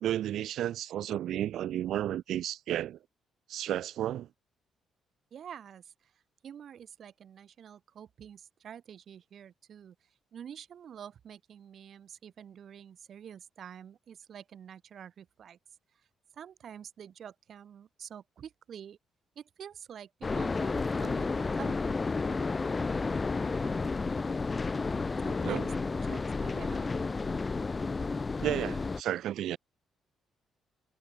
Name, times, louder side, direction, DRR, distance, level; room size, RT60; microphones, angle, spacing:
voice 1, 0.0-3.0 3.5-4.3 25.4-25.6 28.4-29.6, right 12 dB, 75° right, 1.0 m, -32 dB
voice 2, 5.3-6.1 6.4-10.0 10.3-15.6 16.3-19.0 19.4-21.7 25.2-26.9 29.2-29.4, right 8 dB, 60° right, 5.5 m, -47 dB
sound 1, 20.2-29.0, left 4 dB, 30° left, 1.2 m, -31 dB
cardioid pair, 90°, 0 cm